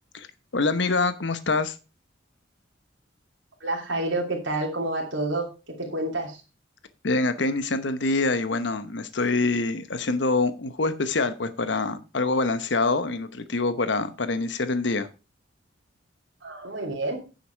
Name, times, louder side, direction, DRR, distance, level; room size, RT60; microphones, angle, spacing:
voice 1, 0.5-1.7 7.0-15.1, left 3 dB, 65° left, 1.0 m, -25 dB
voice 2, 3.6-5.5 5.8-6.4 16.4-17.2, right 2 dB, 75° right, 3.0 m, -28 dB
9.7 x 6.9 x 4.6 m
head